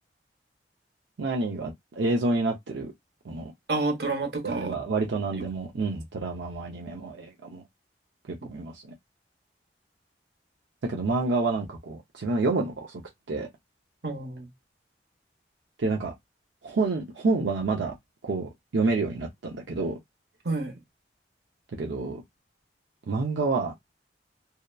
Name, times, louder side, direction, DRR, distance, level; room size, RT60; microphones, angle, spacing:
voice 1, 1.2-2.9 3.2-3.5 4.4-7.6 8.3-8.8 10.9-13.0 13.3-13.5 15.8-16.1 16.6-17.9 18.2-20.0 21.7-22.2 23.1-23.7, right 3 dB, 90° right, 0.5 m, -28 dB
voice 2, 3.7-4.7 5.3-5.4 14.0-14.5 20.4-20.8, right 3 dB, 65° right, 0.8 m, -29 dB
2.7 x 2.0 x 2.2 m
head